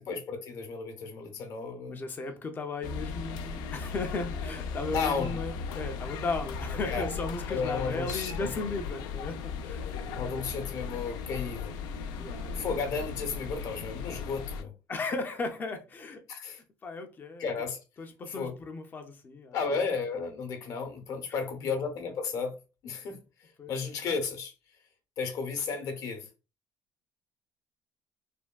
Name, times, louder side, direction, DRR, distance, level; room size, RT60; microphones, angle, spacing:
voice 1, 0.0-2.0 4.9-5.4 6.8-7.1 7.5-8.5 10.2-11.7 12.5-14.7 16.3-16.6 17.4-17.8 18.3-18.6 19.5-23.2 23.7-24.5 25.2-26.3, left 5 dB, 55° left, 0.8 m, -33 dB
voice 2, 1.9-9.8 12.2-12.7 14.9-16.2 16.8-17.5 18.0-19.8 21.6-21.7 23.6-23.7, left 3 dB, 30° left, 0.5 m, -36 dB
sound 1, 2.8-14.6, left 5 dB, 90° left, 0.4 m, -37 dB
3.3 x 2.1 x 2.2 m
cardioid pair, 145°, 7 cm